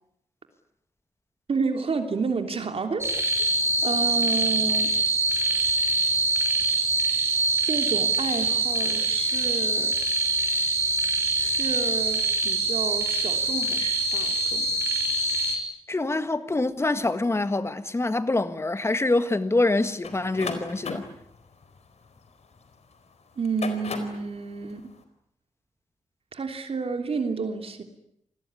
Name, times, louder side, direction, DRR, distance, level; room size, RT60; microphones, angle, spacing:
voice 1, 1.5-3.1 3.4-3.5 3.8-4.9 7.6-9.9 11.4-14.7 23.4-24.8 26.3-27.8, right 4 dB, 55° right, 3.3 m, -30 dB
sound 1, 3.0-15.6, right 2 dB, 25° right, 5.8 m, -24 dB
voice 2, 15.9-21.1, left 2 dB, 25° left, 1.7 m, -25 dB
sound 2, 20.0-22.8 23.4-24.3, left 4 dB, 70° left, 4.3 m, -36 dB
28.0 x 20.5 x 9.8 m
wide cardioid pair, 145°, 12 cm